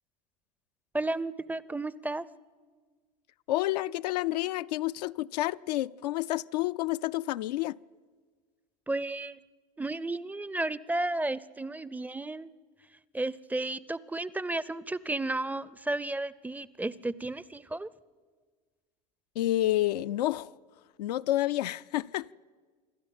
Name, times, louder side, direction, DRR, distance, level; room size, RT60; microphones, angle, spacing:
voice 1, 0.9-2.3 8.9-9.4 9.8-12.5 13.1-17.9, right 2 dB, 10° right, 0.5 m, -33 dB
voice 2, 3.5-7.8 19.4-20.5 21.0-22.3, left 15 dB, 70° left, 0.5 m, -29 dB
27.0 x 12.5 x 8.9 m
hypercardioid pair, 90°, 21 cm